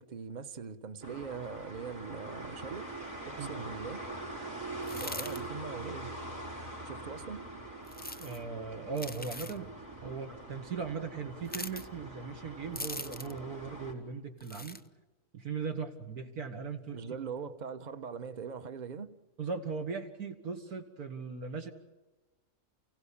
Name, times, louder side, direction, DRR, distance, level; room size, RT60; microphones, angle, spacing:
voice 1, 0.0-2.9 3.3-4.0 5.0-6.1 6.8-7.4 10.0-10.1 16.9-19.1, right 6 dB, 35° right, 1.0 m, -41 dB
sound 1, 1.0-13.9, right 2 dB, 60° right, 4.8 m, -43 dB
sound 2, 4.8-5.4 7.9-8.4 8.9-9.6 11.5-11.9 12.8-13.4 14.4-14.8, left 2 dB, 10° left, 0.4 m, -41 dB
voice 2, 8.2-9.7 10.0-14.8 15.3-17.0 19.4-21.7, right 5 dB, 80° right, 2.5 m, -38 dB
30.0 x 16.5 x 8.7 m
omnidirectional pair, 1.6 m